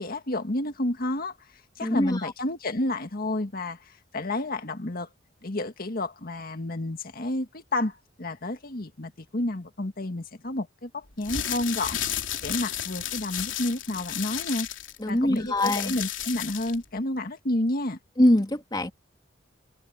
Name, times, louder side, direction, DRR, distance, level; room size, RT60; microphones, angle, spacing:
voice 1, 0.0-1.4 1.8-5.1 5.4-12.0 12.4-14.7 15.1-18.0, left 1 dB, 50° left, 1.8 m, -30 dB
voice 2, 1.8-2.3 15.0-16.0 18.2-18.9, left 1 dB, 20° left, 2.4 m, -23 dB
sound 1, 11.1-16.8, left 11 dB, 90° left, 3.1 m, -33 dB
head